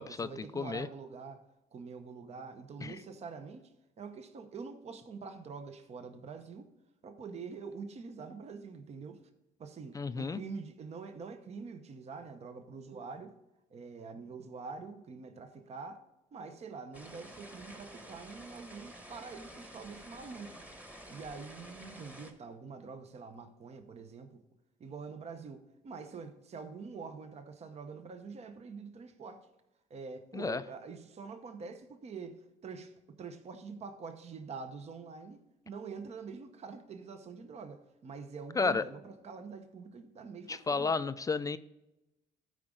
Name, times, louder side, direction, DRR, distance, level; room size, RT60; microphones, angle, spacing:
voice 1, 0.0-1.4 1.7-3.7 4.0-6.7 7.0-9.2 9.6-13.3 13.7-16.0 16.3-20.7 21.1-24.4 24.8-29.5 29.9-40.9, right 5 dB, 40° right, 0.8 m, -45 dB
voice 2, 0.5-0.9 2.8-3.0 9.9-10.4 30.3-30.6 38.6-38.8 40.5-41.6, left 4 dB, 20° left, 0.3 m, -32 dB
sound 1, 16.9-22.3, equal, 10° right, 1.3 m, -50 dB
12.5 x 4.9 x 3.8 m
cardioid pair, 110°, 17 cm